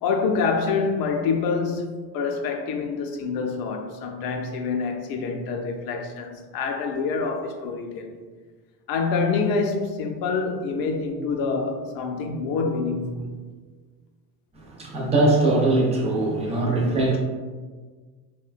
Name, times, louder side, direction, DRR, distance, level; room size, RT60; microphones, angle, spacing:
voice 1, 0.0-8.2 8.9-13.3, left 4 dB, 60° left, 0.5 m, -26 dB
voice 2, 14.8-17.2, right 2 dB, 15° right, 0.3 m, -21 dB
3.6 x 2.2 x 2.4 m
cardioid pair, 155°, 42 cm